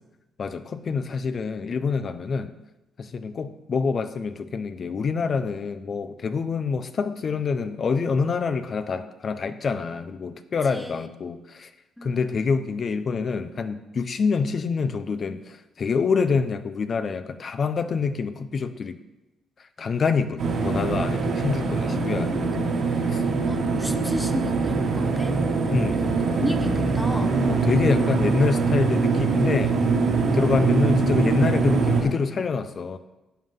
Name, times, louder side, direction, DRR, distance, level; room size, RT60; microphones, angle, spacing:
voice 1, 0.4-2.5 3.0-11.7 12.0-19.0 19.8-22.7 23.1-23.2 25.7-26.0 27.5-29.8 30.3-33.0, left 5 dB, 45° left, 10 dB, 0.8 m, -26 dB
voice 2, 10.6-11.1 12.0-12.3 21.7-22.5 23.4-25.4 25.9-26.1 26.4-27.4 30.3-30.6, equal, ahead, 7 dB, 1.0 m, -34 dB
sound 1, 20.4-32.0, right 4 dB, 70° right, 2.7 m, -23 dB
13.0 x 9.3 x 3.8 m, 0.99 s
cardioid pair, 90°, 0 cm